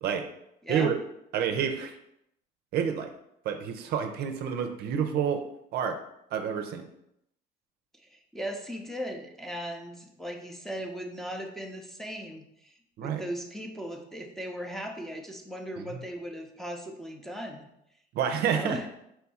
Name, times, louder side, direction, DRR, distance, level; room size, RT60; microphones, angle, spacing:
voice 1, 1.3-1.9 2.7-3.1 3.4-5.4 5.7-6.0 6.3-6.9 13.0-13.2 15.8-15.9 18.1-18.8, right 7 dB, 60° right, 6 dB, 0.5 m, -28 dB
voice 2, 8.1-17.7 18.4-18.9, equal, ahead, 1 dB, 0.6 m, -38 dB
4.5 x 2.3 x 4.2 m, 0.78 s
supercardioid pair, 85°, 18 cm